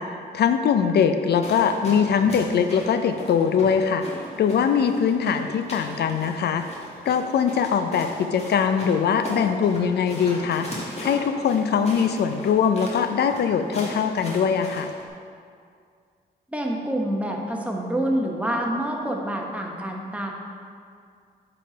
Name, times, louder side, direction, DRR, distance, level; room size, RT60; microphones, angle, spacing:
voice 1, 0.0-4.0 4.4-6.7 7.1-10.7 11.0-14.9, left 7 dB, 70° left, 8 dB, 0.4 m, -22 dB
sound 1, 1.4-15.0, left 1 dB, 40° left, 1.8 m, -38 dB
voice 2, 16.5-20.3, right 1 dB, 5° right, 0 dB, 1.0 m, -27 dB
7.4 x 4.3 x 5.0 m, 2.2 s
cardioid pair, 90°, 17 cm